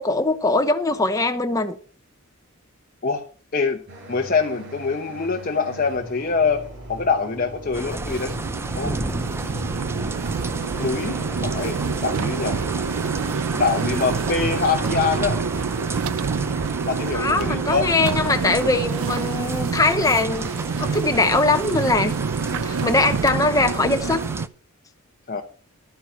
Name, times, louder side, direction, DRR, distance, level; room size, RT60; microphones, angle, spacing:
voice 1, 0.0-1.7 17.1-20.5 20.8-22.1 22.5-24.2, left 2 dB, 15° left, 0.9 m, -21 dB
sound 1, 3.9-21.0, right 1 dB, 55° right, 5.2 m, -40 dB
voice 2, 4.1-8.3 8.7-9.0 10.8-12.6 13.6-15.4 16.9-17.9 25.3-25.4, left 4 dB, 40° left, 0.9 m, -24 dB
sound 2, 7.7-24.5, right 2 dB, 10° right, 0.4 m, -33 dB
sound 3, 7.7-24.5, right 5 dB, 75° right, 0.5 m, -27 dB
12.0 x 9.4 x 4.5 m
head